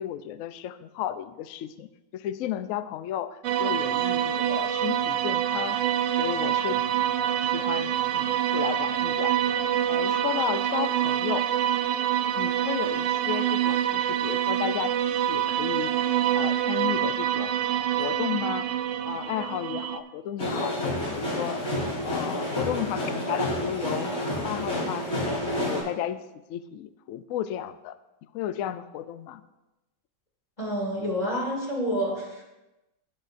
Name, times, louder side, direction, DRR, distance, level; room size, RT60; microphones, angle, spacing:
voice 1, 0.0-5.8 6.2-7.1 7.4-9.4 9.9-11.4 12.4-14.9 15.3-15.9 16.3-17.6 18.0-18.8 19.0-21.6 22.0-24.1 24.4-26.2 26.5-28.0 28.3-29.4, left 11 dB, 80° left, 12 dB, 0.7 m, -33 dB
sound 1, 3.4-20.0, right 11 dB, 85° right, 0.7 m, -26 dB
sound 2, 20.4-25.8, equal, 55° left, 3.9 m, -29 dB
voice 2, 30.6-32.4, equal, 20° left, -3 dB, 2.4 m, -28 dB
17.0 x 6.4 x 2.5 m, 1.0 s
omnidirectional pair, 1.9 m